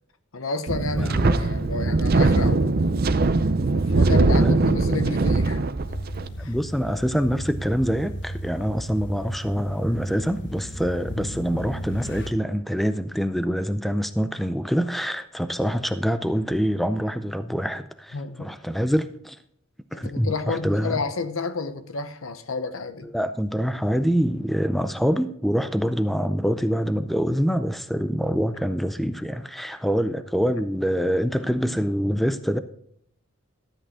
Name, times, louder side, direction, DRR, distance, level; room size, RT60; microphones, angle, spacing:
voice 1, 0.3-3.0 3.7-5.6 6.4-6.5 11.1-11.2 18.1-18.6 19.9-23.1, left 4 dB, 80° left, 1.0 m, -31 dB
Wind, 0.7-6.3, right 3 dB, 45° right, 0.5 m, -21 dB
voice 2, 0.9-1.5 4.4-4.5 6.5-19.4 19.9-21.0 23.1-32.6, equal, ahead, 0.4 m, -25 dB
sound 1, 5.8-12.3, equal, 60° left, 1.4 m, -35 dB
12.5 x 8.6 x 3.7 m
head